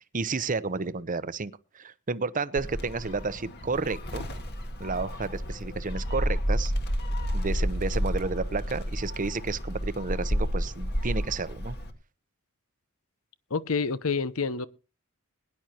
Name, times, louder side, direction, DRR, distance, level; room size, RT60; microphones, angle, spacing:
voice 1, 0.1-4.3 4.8-6.7 7.3-11.8, right 4 dB, 40° right, 0.8 m, -31 dB
Gull seagull, 2.6-11.9, equal, 50° left, 1.8 m, -31 dB
voice 2, 13.5-14.7, left 4 dB, 75° left, 0.9 m, -28 dB
21.5 x 11.0 x 2.9 m
head